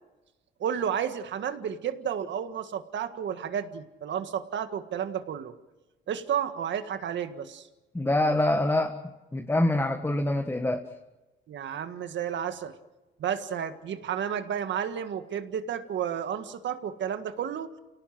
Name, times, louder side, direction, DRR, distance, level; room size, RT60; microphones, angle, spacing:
voice 1, 0.6-5.5 6.1-7.7 11.5-12.7 13.2-17.7, right 8 dB, 65° right, 9 dB, 1.8 m, -32 dB
voice 2, 7.9-9.0 9.3-10.8, left 1 dB, 10° left, 4 dB, 1.6 m, -25 dB
28.5 x 18.0 x 7.6 m, 1.1 s
cardioid pair, 90°, 20 cm